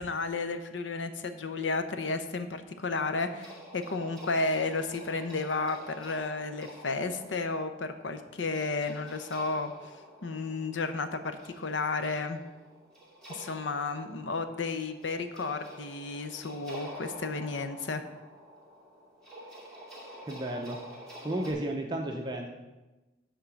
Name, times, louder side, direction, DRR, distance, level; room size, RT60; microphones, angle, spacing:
voice 1, 0.0-9.7 10.2-12.4 13.3-18.0, left 3 dB, 90° left, 9 dB, 0.8 m, -32 dB
sound 1, 3.3-21.5, equal, 5° left, 2.2 m, -49 dB
voice 2, 20.2-20.8 21.2-22.5, right 1 dB, 25° right, 1 dB, 0.6 m, -33 dB
11.0 x 3.8 x 7.0 m, 1.1 s
head